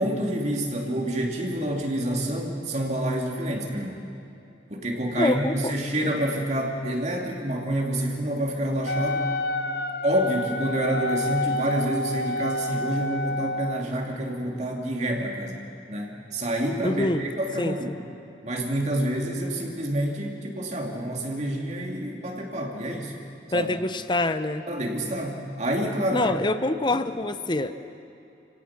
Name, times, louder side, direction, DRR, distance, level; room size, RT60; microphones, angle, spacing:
voice 1, 0.0-4.0 4.7-9.3 10.0-15.6 15.9-17.9 18.4-23.1 23.5-23.7 24.7-26.3, right 1 dB, 40° right, 0 dB, 2.7 m, -28 dB
voice 2, 5.2-5.7 16.8-17.3 17.6-18.0 23.5-24.7 26.1-27.7, left 2 dB, 25° left, 11 dB, 0.8 m, -25 dB
Wind instrument woodwind instrument, 8.8-13.9, left 2 dB, 60° left, 0.9 m, -29 dB
29.5 x 17.0 x 6.0 m, 2.8 s
head